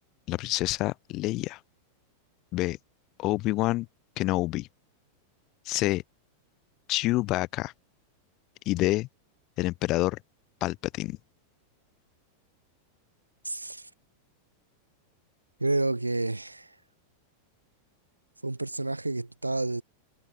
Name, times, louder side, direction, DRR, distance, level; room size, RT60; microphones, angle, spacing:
voice 1, 0.3-1.6 2.5-2.8 3.2-3.9 4.2-4.7 5.7-6.0 6.9-7.7 8.7-9.1 9.6-10.2 10.6-11.2, left 19 dB, 40° left, 1.1 m, -27 dB
voice 2, 13.4-13.9 15.6-16.7 18.4-19.8, right 2 dB, 85° right, 2.3 m, -29 dB
figure-of-eight pair, 90°, 0 cm